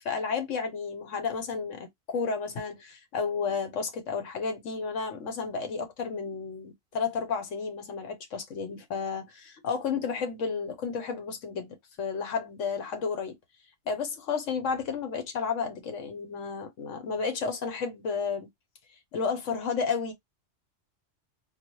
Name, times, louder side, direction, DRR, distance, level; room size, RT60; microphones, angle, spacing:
voice 1, 0.0-13.4 13.9-18.5 19.1-20.1, left 5 dB, 85° left, 1.3 m, -32 dB
3.8 x 2.2 x 3.0 m
omnidirectional pair, 1.3 m